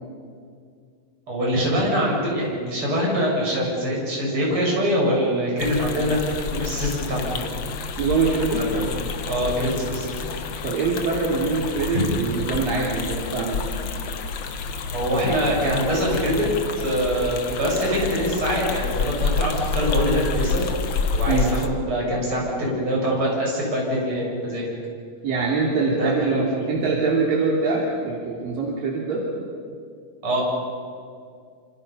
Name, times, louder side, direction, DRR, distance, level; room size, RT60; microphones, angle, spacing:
voice 1, 1.3-6.2 6.5-7.4 8.5-8.8 9.3-10.3 11.9-12.0 14.9-16.5 16.8-20.7 21.1-24.7 26.0-26.7 30.2-30.4, equal, 35° right, -3 dB, 8.3 m, -24 dB
sound 1, 5.6-21.7, left 4 dB, 75° left, 1.1 m, -29 dB
voice 2, 8.0-8.8 10.6-13.7 21.3-21.5 25.2-29.2, right 4 dB, 75° right, -3 dB, 4.4 m, -24 dB
27.0 x 26.5 x 5.7 m, 2.2 s
omnidirectional pair, 4.0 m